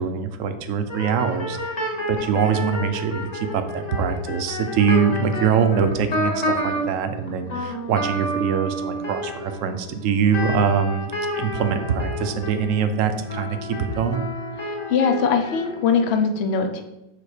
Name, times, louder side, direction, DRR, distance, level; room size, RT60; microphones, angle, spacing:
voice 1, 0.0-1.8 2.1-11.1 11.4-14.3, right 6 dB, 70° right, 8 dB, 0.7 m, -23 dB
sound 1, 0.9-7.0 7.3-16.1, equal, 25° left, 1.1 m, -30 dB
voice 2, 14.9-16.8, left 5 dB, 65° left, 5 dB, 0.6 m, -21 dB
7.1 x 4.1 x 4.9 m, 0.93 s
omnidirectional pair, 2.1 m